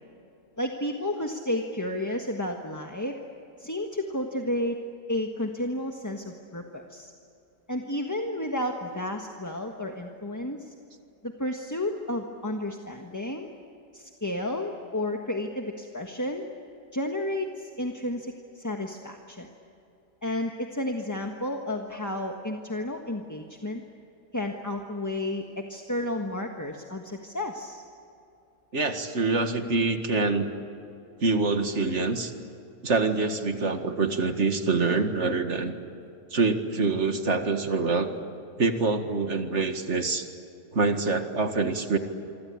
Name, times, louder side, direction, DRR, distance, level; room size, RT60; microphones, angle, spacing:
voice 1, 0.6-3.1 3.6-4.8 5.1-7.1 7.7-10.7 11.2-13.5 13.9-16.4 16.9-19.5 20.2-23.8 24.3-27.8, left 1 dB, 10° left, 2 dB, 1.3 m, -32 dB
voice 2, 28.7-30.5 31.2-32.3 32.8-35.7 36.3-38.1 38.6-40.3 40.7-42.0, right 3 dB, 40° right, 6 dB, 2.1 m, -25 dB
27.5 x 25.0 x 8.7 m, 2.7 s
omnidirectional pair, 1.9 m